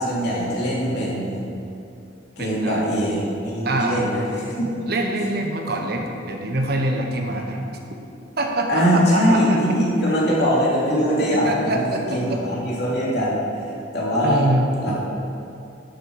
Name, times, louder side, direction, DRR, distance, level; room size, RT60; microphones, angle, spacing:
voice 1, 0.0-1.3 2.4-4.8 7.3-7.5 8.7-13.4 13.9-14.4 14.8-14.9, equal, 60° left, -6 dB, 2.8 m, -22 dB
voice 2, 2.4-2.8 3.6-4.0 4.9-7.6 8.4-9.6 11.3-12.4 14.2-14.7, right 1 dB, 55° right, 2 dB, 1.2 m, -25 dB
10.5 x 7.9 x 4.8 m, 2.6 s
head